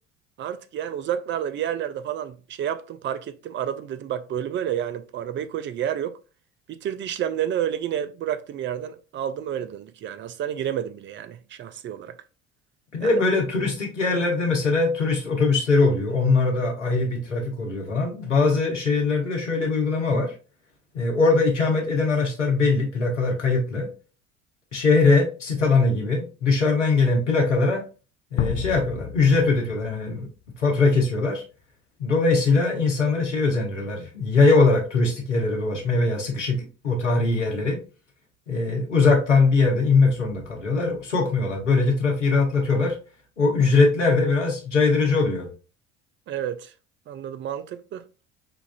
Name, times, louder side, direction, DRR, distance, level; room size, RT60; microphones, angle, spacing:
voice 1, 0.4-6.2 6.7-12.2 13.0-13.1 46.3-46.7 47.1-48.0, right 10 dB, 35° right, 0.4 m, -30 dB
voice 2, 12.9-20.3 20.9-23.9 24.7-27.8 28.3-30.3 30.6-31.4 32.0-37.8 38.5-43.0 43.4-45.5, left 3 dB, 90° left, 1.1 m, -21 dB
sound 1, 28.4-30.8, left 10 dB, 55° left, 0.5 m, -31 dB
5.7 x 2.4 x 2.2 m
figure-of-eight pair, 60°, 35 cm